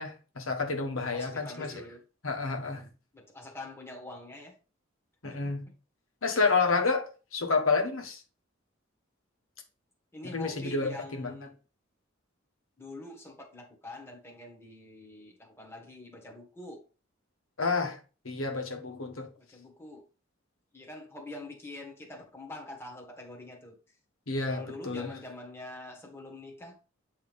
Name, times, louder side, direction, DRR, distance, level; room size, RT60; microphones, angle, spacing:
voice 1, 0.0-1.7 2.2-2.8 5.2-5.6 6.2-8.2 10.3-11.3 17.6-18.0 18.2-19.3 24.3-25.1, left 4 dB, 85° left, 1.4 m, -29 dB
voice 2, 1.1-2.0 3.1-4.6 5.2-5.7 10.1-11.6 12.8-16.8 19.4-20.1 20.7-23.8 24.4-26.8, left 2 dB, 10° left, 1.6 m, -45 dB
8.6 x 3.3 x 5.3 m
head